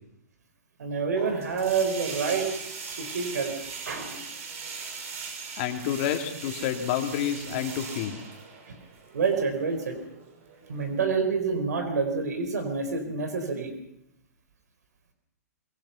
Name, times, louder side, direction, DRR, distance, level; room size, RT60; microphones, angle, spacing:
voice 1, 0.8-2.5 3.0-3.5 3.9-4.2 8.7-8.8 9.1-10.0 10.7-13.7, right 5 dB, 80° right, 7 dB, 4.4 m, -27 dB
sound 1, 1.2-11.1, right 5 dB, 55° right, 6.3 m, -40 dB
voice 2, 5.6-8.2, left 10 dB, 40° left, 4 dB, 2.8 m, -29 dB
24.5 x 22.5 x 5.8 m, 0.80 s
hypercardioid pair, 150°, 9 cm